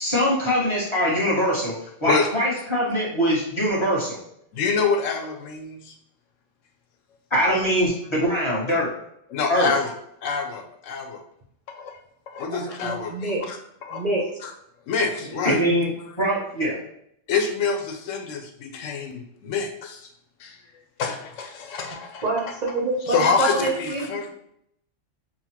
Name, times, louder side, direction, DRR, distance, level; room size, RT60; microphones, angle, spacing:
voice 1, 0.0-4.2 7.3-8.9 9.5-9.7 15.4-16.8, equal, 25° left, -6 dB, 1.2 m, -23 dB
voice 2, 4.5-5.9 9.3-9.9 10.2-11.2 11.7-12.0 12.3-13.6 13.9-14.0 14.4-14.5 14.9-15.6 17.3-20.1 20.4-20.6 21.0-22.2 23.1-24.3, left 5 dB, 85° left, 4 dB, 1.0 m, -26 dB
voice 3, 12.5-13.4 13.9-14.2 15.3-15.7 22.2-24.3, right 2 dB, 40° right, -4 dB, 0.8 m, -27 dB
5.4 x 2.2 x 2.9 m, 0.74 s
omnidirectional pair, 1.3 m